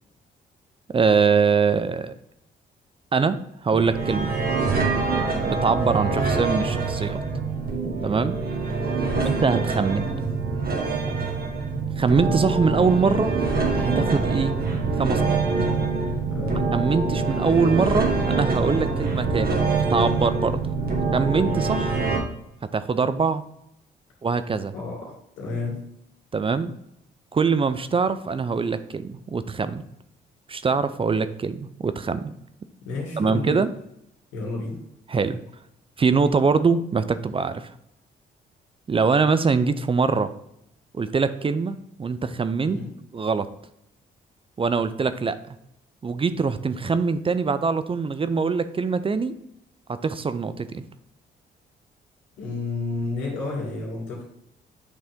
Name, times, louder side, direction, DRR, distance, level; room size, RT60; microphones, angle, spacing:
voice 1, 0.9-2.1 3.1-4.3 5.5-7.2 8.0-8.4 9.2-10.1 12.0-13.3 13.8-14.6 15.0-15.4 16.7-19.6 19.9-20.6 21.1-21.9 22.6-23.4 24.2-24.7 26.3-26.7 27.3-29.8 30.5-32.3 33.2-33.7 35.1-35.4 36.0-37.7 38.9-40.3 40.9-42.8 43.1-43.5 44.6-45.4 46.0-49.3 49.9-50.8, right 5 dB, 30° right, 12 dB, 0.5 m, -23 dB
sound 1, 3.7-22.2, right 4 dB, 55° right, 1.5 m, -25 dB
voice 2, 9.0-9.4 16.3-16.7 24.7-25.8 32.8-33.6 34.3-34.8 42.6-42.9 52.4-54.2, left 3 dB, 85° left, -2 dB, 2.3 m, -31 dB
8.1 x 3.3 x 3.6 m, 0.79 s
supercardioid pair, 65°, 19 cm